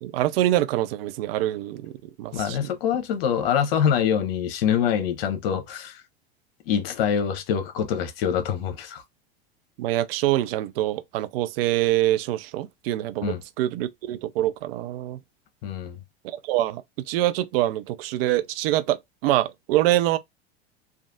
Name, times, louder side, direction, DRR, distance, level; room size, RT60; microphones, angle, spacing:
voice 1, 0.0-2.7 9.8-15.2 16.2-20.2, right 14 dB, 65° right, 0.5 m, -25 dB
voice 2, 2.3-6.0 6.7-9.0 13.2-13.4 15.6-16.0, left 8 dB, 65° left, 1.0 m, -25 dB
3.2 x 2.5 x 2.5 m
hypercardioid pair, 90°, 32 cm